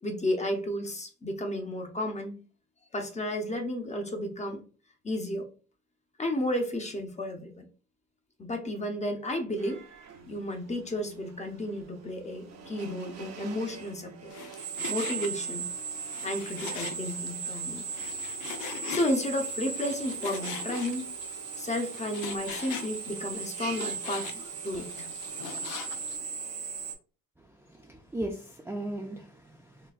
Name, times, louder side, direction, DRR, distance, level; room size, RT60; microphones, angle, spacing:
voice 1, 0.0-2.3 2.9-4.6 5.0-5.5 6.2-7.7 8.4-9.8 10.3-14.3 14.9-15.7 16.2-17.8 18.9-21.1 21.6-25.1, left 1 dB, 25° left, 0.7 m, -32 dB
Drill, 9.6-26.9, right 6 dB, 60° right, 0.8 m, -38 dB
Frying (food), 14.3-26.2, left 7 dB, 90° left, 0.5 m, -42 dB
voice 2, 27.4-29.9, right 1 dB, 10° right, 0.4 m, -38 dB
3.8 x 2.2 x 2.4 m
cardioid pair, 90°, 30 cm